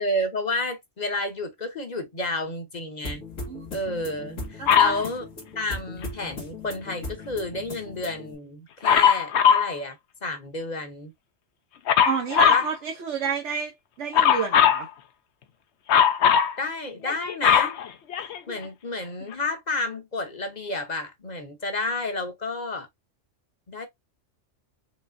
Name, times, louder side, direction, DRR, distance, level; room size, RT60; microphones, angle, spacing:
voice 1, 0.0-3.2 3.7-5.3 5.5-10.0 10.2-11.1 12.4-12.7 16.3-17.8 18.2-22.9 23.7-23.9, left 2 dB, 40° left, 1.0 m, -31 dB
sound 1, 3.0-8.4, left 2 dB, 90° left, 1.9 m, -38 dB
voice 2, 4.6-5.0 12.0-13.7 14.0-14.9, right 6 dB, 70° right, 1.3 m, -29 dB
Dog, 4.7-5.0 8.8-9.7 11.9-12.7 14.1-14.8 15.9-16.5 17.1-18.6 19.3-19.4, left 8 dB, 65° left, 0.9 m, -19 dB
4.9 x 3.3 x 2.6 m
omnidirectional pair, 1.3 m